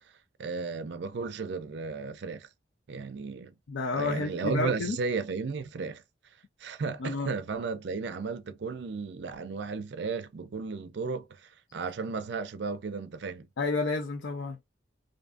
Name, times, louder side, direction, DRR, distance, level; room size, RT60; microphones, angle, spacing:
voice 1, 0.4-2.5 2.9-3.5 3.9-6.0 6.6-13.5, right 4 dB, 65° right, 0.4 m, -34 dB
voice 2, 3.7-5.0 7.0-7.3 13.6-14.6, left 3 dB, 80° left, 0.5 m, -30 dB
2.6 x 2.5 x 2.2 m
head